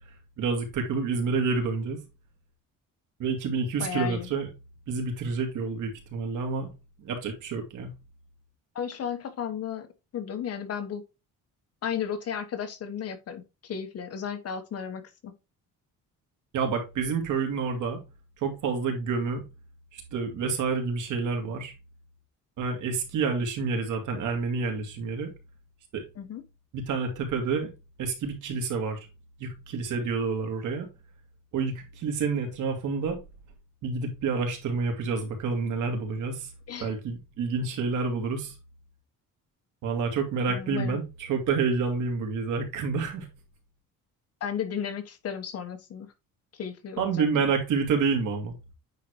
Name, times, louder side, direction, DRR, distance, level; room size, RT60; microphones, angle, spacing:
voice 1, 0.4-2.0 3.2-4.5 4.9-6.7 7.0-7.9 16.5-18.0 18.4-19.4 19.9-21.7 22.6-25.3 25.9-26.0 26.7-27.7 28.0-29.1 29.4-30.9 31.5-33.2 33.8-36.5 36.8-38.5 39.8-43.3 47.0-48.5, right 5 dB, 65° right, 2.6 m, -28 dB
voice 2, 3.8-4.3 8.7-11.0 11.8-15.3 26.2-26.4 36.7-36.9 40.5-41.0 44.4-46.1 46.5-47.5, left 8 dB, 45° left, 1.3 m, -34 dB
9.3 x 4.2 x 3.1 m
cardioid pair, 150°, 33 cm